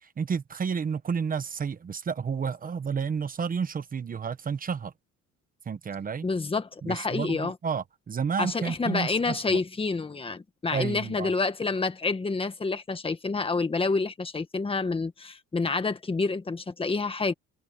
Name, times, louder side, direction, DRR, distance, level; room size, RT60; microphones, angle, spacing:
voice 1, 0.0-4.9 5.7-6.2 6.8-9.6 10.7-11.3, right 6 dB, 30° right, 1.1 m, -31 dB
voice 2, 6.2-7.5 8.4-17.3, left 3 dB, 20° left, 1.6 m, -28 dB
cardioid pair, 145°, 30 cm